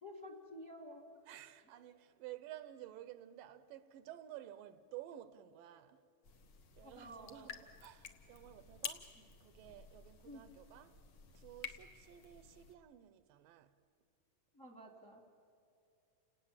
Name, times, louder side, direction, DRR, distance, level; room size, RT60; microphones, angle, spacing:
voice 1, 0.0-1.0 6.8-7.6 10.2-10.4 14.5-15.2, equal, 35° left, 1.3 m, -51 dB
voice 2, 1.3-6.0 6.8-9.1 9.4-11.0 11.3-13.7, right 12 dB, 80° right, 2.3 m, -53 dB
sound 1, 6.2-12.7, left 6 dB, 65° left, 1.3 m, -51 dB
29.5 x 18.5 x 7.3 m
omnidirectional pair, 4.1 m